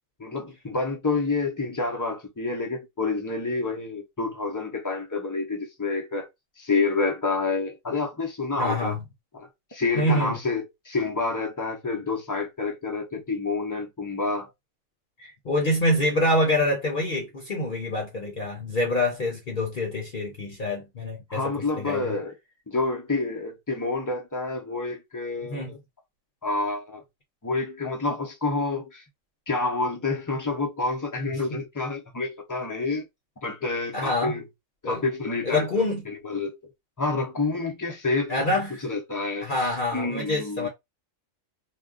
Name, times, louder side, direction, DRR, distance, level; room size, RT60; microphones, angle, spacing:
voice 1, 0.2-6.3 6.6-8.9 9.3-14.5 21.3-22.3 22.7-25.8 26.4-27.0 27.4-29.0 29.5-33.0 33.4-34.4 34.8-35.7 36.2-36.6 37.0-38.5 38.8-40.7, left 3 dB, 30° left, 0.3 m, -28 dB
voice 2, 8.6-9.0 10.0-10.4 15.2-22.1 25.4-25.7 31.5-31.6 33.9-34.4 34.8-35.0 35.4-36.0 38.3-38.8 39.4-40.7, left 1 dB, 45° left, 0.8 m, -26 dB
2.4 x 2.2 x 3.6 m
omnidirectional pair, 1.4 m